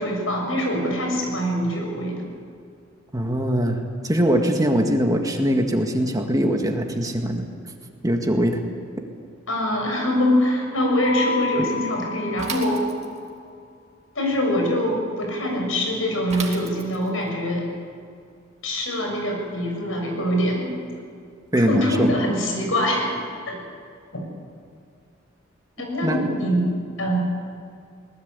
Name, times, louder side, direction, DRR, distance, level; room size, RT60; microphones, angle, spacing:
voice 1, 0.0-2.2 9.5-12.9 14.2-17.7 18.6-20.7 21.6-23.2 23.5-23.6 25.8-27.2, equal, 80° left, 1 dB, 7.0 m, -24 dB
voice 2, 3.1-7.4 8.0-8.6 21.5-22.1 26.0-26.2, equal, 20° right, 3 dB, 1.9 m, -22 dB
Mallet percussion, 11.0-13.1, left 5 dB, 35° left, 6.8 m, -31 dB
Bicycle / Mechanisms, 12.4-13.4 16.3-17.2, right 5 dB, 35° right, 2.5 m, -35 dB
22.0 x 19.5 x 8.3 m, 2.2 s
head